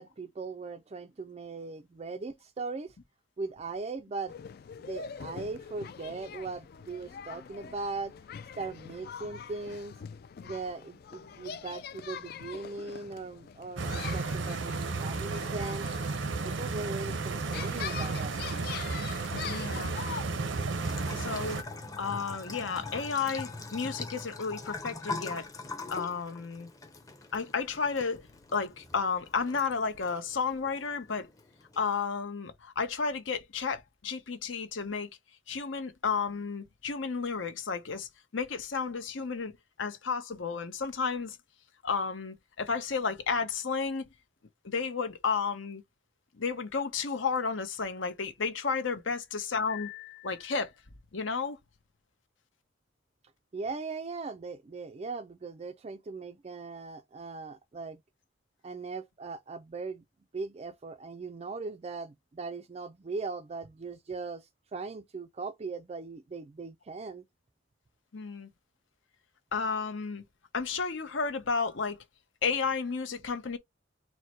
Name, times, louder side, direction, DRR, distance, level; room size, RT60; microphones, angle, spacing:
voice 1, 0.0-3.0 3.4-4.3 4.8-8.1 8.6-10.0 10.4-15.9 16.4-18.4 53.5-58.0 58.6-60.0 60.3-67.2, right 4 dB, 30° right, 0.3 m, -39 dB
sound 1, 4.3-20.2, left 7 dB, 50° left, 0.3 m, -44 dB
Stream, 13.8-21.6, right 3 dB, 70° right, 0.6 m, -33 dB
voice 2, 19.5-19.9 21.1-21.6 22.0-25.5 25.9-26.7 27.3-28.2 28.5-31.3 31.8-35.1 35.5-39.5 39.8-41.4 41.8-44.1 44.6-45.8 46.4-50.7 51.1-51.6 68.1-68.5 69.5-70.2 70.5-72.0 72.4-73.6, left 5 dB, 75° left, 0.9 m, -32 dB
Bathtub (filling or washing) / Trickle dribble, 20.8-31.8, left 3 dB, 20° left, 0.7 m, -42 dB
4.5 x 2.1 x 4.4 m
head